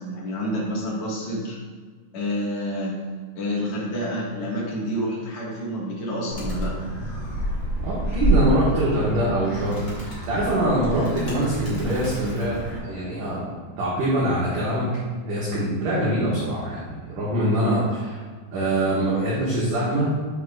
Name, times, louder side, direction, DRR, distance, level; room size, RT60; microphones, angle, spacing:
voice 1, 0.0-1.6 2.1-3.0 3.3-6.7, equal, 70° left, -6 dB, 1.2 m, -28 dB
Animal, 6.3-12.8, right 1 dB, 35° left, 1.4 m, -28 dB
voice 2, 7.8-14.9 15.2-18.2 18.5-20.1, right 1 dB, 60° right, -8 dB, 2.4 m, -24 dB
10.5 x 6.1 x 2.5 m, 1.5 s
omnidirectional pair, 5.6 m